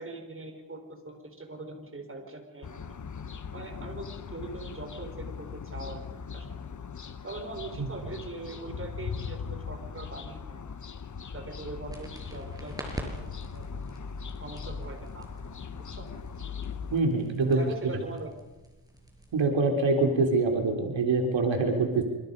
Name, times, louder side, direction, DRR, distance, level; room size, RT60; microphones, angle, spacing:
voice 1, 0.0-3.0 3.5-6.0 6.3-6.5 7.2-10.6 11.3-13.1 13.5-13.6 14.4-15.3 16.0-16.1 17.4-18.3, right 2 dB, 25° right, 4 dB, 4.8 m, -41 dB
sound 1, 2.6-17.0, left 6 dB, 35° left, 1.3 m, -40 dB
sound 2, 11.9-19.5, right 1 dB, 10° right, 6.0 m, -46 dB
voice 2, 16.9-17.9 19.3-22.0, right 3 dB, 65° right, 3 dB, 3.7 m, -25 dB
27.0 x 26.5 x 5.4 m, 1.1 s
cardioid pair, 100°, 48 cm